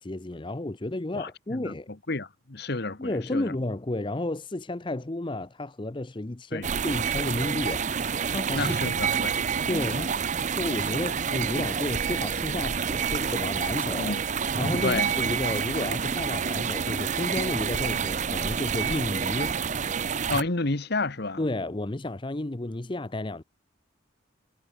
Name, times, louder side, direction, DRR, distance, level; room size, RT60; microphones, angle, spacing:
voice 1, 0.0-1.9 3.0-7.9 8.3-8.7 9.7-10.1 10.5-14.1 14.6-19.5 21.4-23.4, left 2 dB, 25° left, 0.7 m, -32 dB
voice 2, 1.1-3.5 6.5-6.7 8.5-9.8 14.0-14.2 14.8-15.1 20.3-21.4, left 3 dB, 55° left, 1.4 m, -31 dB
sound 1, 6.6-20.4, right 6 dB, 40° right, 0.6 m, -28 dB
head